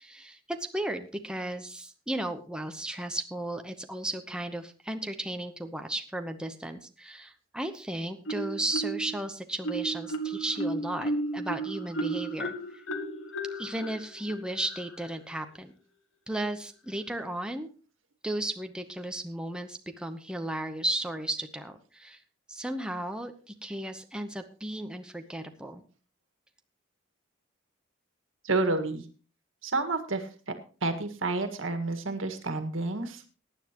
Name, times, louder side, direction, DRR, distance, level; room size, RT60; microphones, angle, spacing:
voice 1, 0.0-12.5 13.6-15.7 16.3-17.7 18.2-22.2 22.5-25.8, right 1 dB, 5° right, 6 dB, 0.9 m, -35 dB
Marimba xylophone, 8.3-9.2 9.6-15.1, right 2 dB, 80° left, 1.6 m, -34 dB
voice 2, 28.4-29.0 29.6-30.5 30.8-33.3, right 3 dB, 85° right, 7 dB, 1.8 m, -30 dB
18.5 x 9.7 x 3.0 m, 0.37 s
head